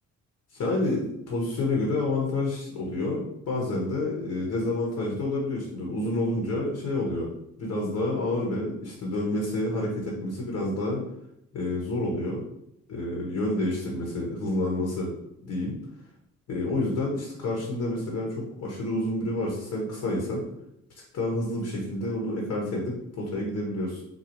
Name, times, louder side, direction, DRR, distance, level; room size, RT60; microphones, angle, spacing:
voice 1, 0.5-7.3 7.6-11.0 11.5-12.4 12.9-15.1 15.4-15.8 16.5-20.4 21.1-24.0, left 2 dB, 60° left, -2 dB, 1.2 m, -29 dB
4.1 x 2.3 x 4.5 m, 0.79 s
cardioid pair, 90°, 30 cm